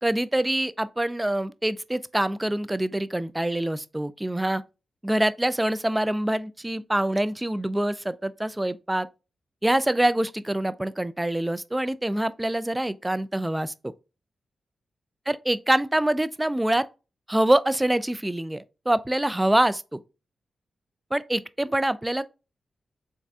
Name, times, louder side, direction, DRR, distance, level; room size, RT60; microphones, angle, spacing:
voice 1, 0.0-4.6 5.0-9.1 9.6-13.7 15.3-16.9 17.3-20.0 21.1-22.2, right 1 dB, 15° right, 0.4 m, -25 dB
4.1 x 3.4 x 2.3 m
supercardioid pair, 45°, 0 cm